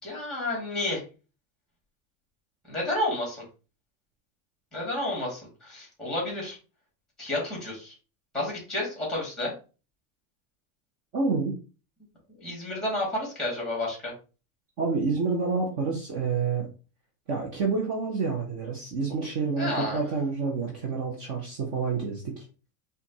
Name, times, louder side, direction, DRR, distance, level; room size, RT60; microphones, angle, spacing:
voice 1, 0.0-1.0 2.7-3.4 4.7-6.6 7.2-8.0 8.3-9.5 12.4-14.1 19.6-20.0, left 1 dB, ahead, -3 dB, 2.0 m, -30 dB
voice 2, 11.1-11.5 14.8-16.7 17.3-22.4, right 4 dB, 40° right, -1 dB, 0.9 m, -28 dB
5.0 x 2.5 x 2.8 m, 0.34 s
supercardioid pair, 170°, 45 cm